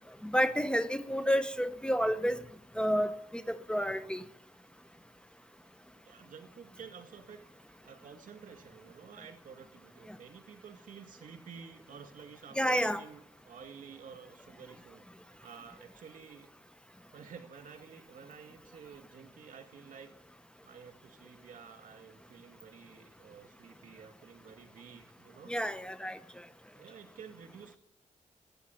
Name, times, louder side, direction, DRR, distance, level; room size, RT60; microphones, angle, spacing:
voice 1, 0.2-2.4 2.8-4.2 12.6-13.0 25.5-26.2, equal, 5° left, 12 dB, 0.7 m, -30 dB
voice 2, 6.0-16.5 17.1-20.1 20.6-25.6 26.7-27.8, right 6 dB, 75° right, 6 dB, 2.2 m, -51 dB
13.0 x 9.6 x 9.4 m, 0.83 s
cardioid pair, 90°, 14 cm